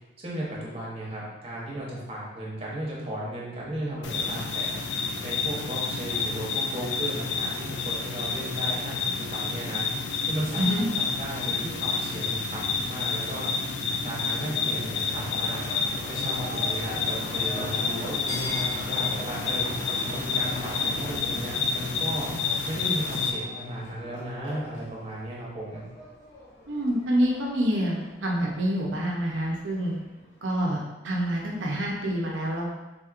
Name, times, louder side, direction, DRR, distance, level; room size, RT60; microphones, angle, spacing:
voice 1, 0.2-4.8 5.2-9.8 10.3-13.5 14.0-15.6 16.1-19.6 20.0-22.3 22.6-25.8, right 1 dB, 30° right, -5 dB, 0.9 m, -35 dB
sound 1, 4.0-23.3, left 4 dB, 70° left, 0.3 m, -29 dB
Livestock farm animals working animals, 14.2-30.7, left 1 dB, 40° left, 0.8 m, -41 dB
voice 2, 26.7-29.9 30.4-32.8, equal, 90° right, -2 dB, 0.6 m, -27 dB
4.0 x 2.9 x 2.4 m, 1.1 s
head